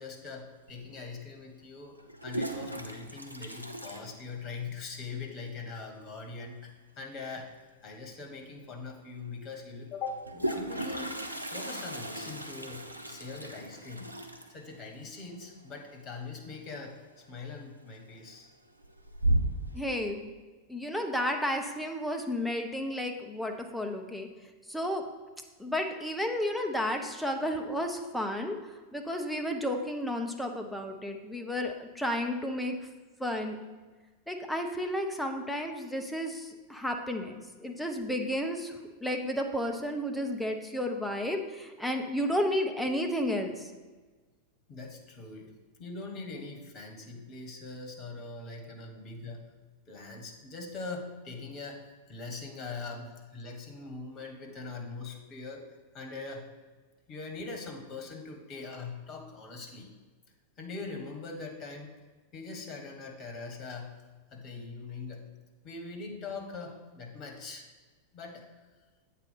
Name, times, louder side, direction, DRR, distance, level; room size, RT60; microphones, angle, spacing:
voice 1, 0.0-2.0 2.2-7.5 7.8-11.2 11.5-14.1 14.5-18.5 44.7-45.5 45.8-49.4 49.9-51.8 52.1-55.6 55.9-56.5 57.1-59.9 60.6-61.9 62.3-64.0 64.3-65.2 65.6-67.7 68.1-68.5, left 4 dB, 30° left, 3 dB, 1.4 m, -42 dB
Toilet flush, 0.7-0.8 2.0-4.8 5.1-5.2 5.4-5.5 5.8-6.2 7.9-8.0 8.4-8.5 10.0-16.7 17.0-17.4 17.9-18.4 18.8-19.8, right 1 dB, 85° right, 0.6 m, -35 dB
voice 2, 19.7-20.3 20.7-24.3 24.7-25.0 25.6-32.7 33.2-33.6 34.3-38.7 39.0-43.7 48.6-48.7, equal, ahead, 3 dB, 0.8 m, -32 dB
8.1 x 4.2 x 5.7 m, 1.3 s
figure-of-eight pair, 90°, 0 cm